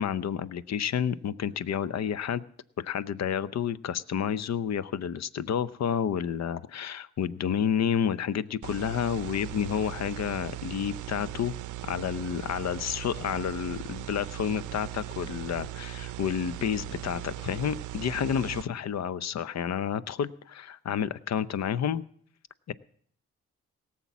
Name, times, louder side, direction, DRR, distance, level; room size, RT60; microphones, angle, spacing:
voice 1, 0.0-2.4 2.8-11.5 11.8-22.0 22.7-22.8, left 8 dB, 55° left, 16 dB, 0.7 m, -30 dB
sound 1, 8.6-18.6, right 14 dB, 70° right, 0.6 m, -39 dB
17.5 x 7.3 x 7.2 m, 0.62 s
supercardioid pair, 45°, 32 cm